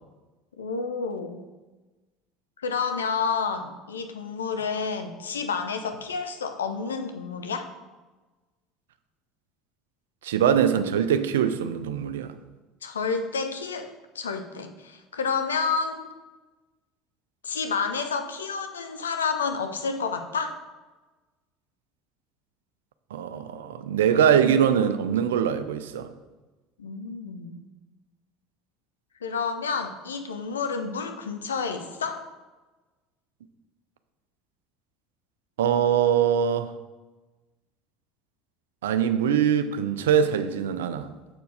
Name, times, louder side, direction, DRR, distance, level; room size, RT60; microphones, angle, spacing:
voice 1, 0.6-1.4 2.6-7.7 12.8-16.1 17.4-20.6 26.8-27.6 29.2-32.2, left 5 dB, 75° left, 6 dB, 0.5 m, -30 dB
voice 2, 10.2-12.3 23.1-26.1 35.6-36.7 38.8-41.1, right 8 dB, 70° right, 11 dB, 0.4 m, -23 dB
6.6 x 4.5 x 4.8 m, 1.2 s
figure-of-eight pair, 65°, 0 cm